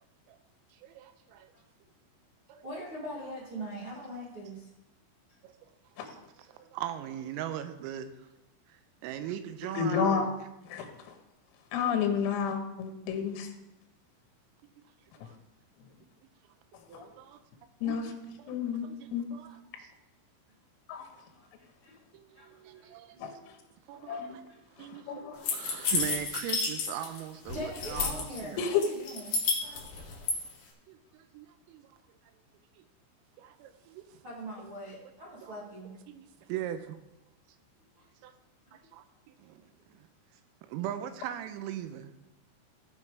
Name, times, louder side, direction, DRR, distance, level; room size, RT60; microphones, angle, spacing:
voice 1, 0.8-1.5 2.5-2.6 5.4-5.5 6.1-6.2 6.5-8.1 9.0-10.3 14.8-14.9 15.2-15.4 16.9-17.4 17.8-18.2 18.4-18.6 18.8-19.9 22.1-23.2 23.9-24.4 24.8-28.6 30.9-32.0 32.8-32.9 33.4-34.2 35.4-35.6 36.1-37.0 38.2-38.3 38.7-39.1 39.4-39.6 39.9-40.1 40.6-42.1, right 11 dB, 90° right, 10 dB, 3.3 m, -40 dB
voice 2, 2.6-4.6 20.9-21.4 21.8-21.9 22.3-22.5 22.7-22.9 23.1-23.2 24.1-24.2 24.9-25.0 27.5-29.4 34.2-35.9, equal, 60° right, -8 dB, 1.3 m, -42 dB
voice 3, 9.8-10.3 10.7-11.1 11.7-13.5 16.9-17.1 17.8-18.1 18.5-18.9 19.1-19.3 20.9-21.0 23.2-23.4 24.1-24.3 24.8-25.5 28.6-28.8, left 7 dB, 85° left, 5 dB, 3.9 m, -30 dB
sound 1, 25.4-27.2 27.5-28.4 28.8-30.4, left 4 dB, 55° left, 2.4 m, -30 dB
16.0 x 5.4 x 4.7 m, 0.93 s
omnidirectional pair, 5.9 m